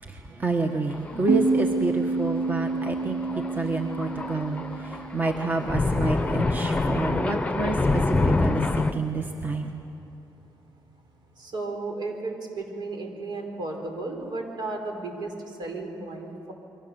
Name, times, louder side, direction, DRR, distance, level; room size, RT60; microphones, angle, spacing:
voice 1, 0.0-9.7, right 3 dB, 20° right, 4 dB, 1.4 m, -29 dB
Thunder, 0.9-1.3 1.6-1.7 2.7-8.9, left 2 dB, 15° left, 1.0 m, -26 dB
sound 1, 1.3-6.6, right 3 dB, 85° right, 3.3 m, -29 dB
voice 2, 11.4-16.5, right 3 dB, 70° right, 3 dB, 4.8 m, -34 dB
29.0 x 23.5 x 7.1 m, 2.9 s
cardioid pair, 140°, 8 cm